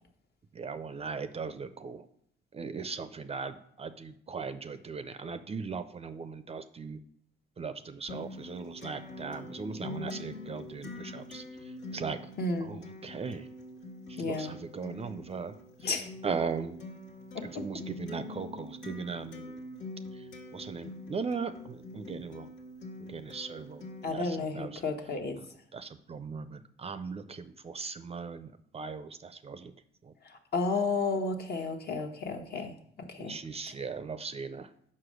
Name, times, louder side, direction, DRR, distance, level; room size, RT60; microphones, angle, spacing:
voice 1, 0.6-2.0 2.5-7.0 7.6-11.4 11.9-12.2 12.7-13.4 14.1-15.5 16.2-16.8 17.4-19.6 20.5-22.5 23.1-23.8 24.1-24.2 24.6-24.7 25.7-28.5 28.7-29.7 33.2-34.7, right 5 dB, 30° right, 11 dB, 0.4 m, -38 dB
Acoustic guitar, 8.1-24.1, left 2 dB, 70° left, 1.5 m, -44 dB
voice 2, 12.4-12.8 14.2-14.6 15.8-16.1 17.3-17.6 24.0-25.4 30.2-33.4 33.6-33.7, left 3 dB, 55° left, 4 dB, 1.1 m, -32 dB
5.5 x 4.9 x 6.3 m, 0.66 s
cardioid pair, 90°, 20 cm